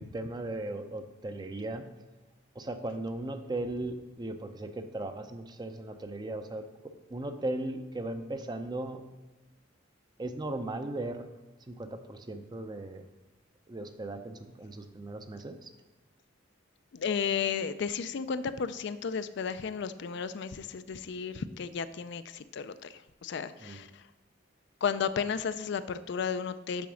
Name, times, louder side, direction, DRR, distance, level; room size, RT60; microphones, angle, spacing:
voice 1, 0.0-1.9 2.5-6.7 7.1-9.1 10.2-11.3 11.7-13.1 13.7-15.7 23.6-23.8, right 2 dB, 20° right, 8 dB, 0.5 m, -37 dB
voice 2, 16.9-24.0 24.8-26.9, left 6 dB, 60° left, 12 dB, 0.4 m, -33 dB
7.1 x 5.9 x 6.2 m, 1.1 s
head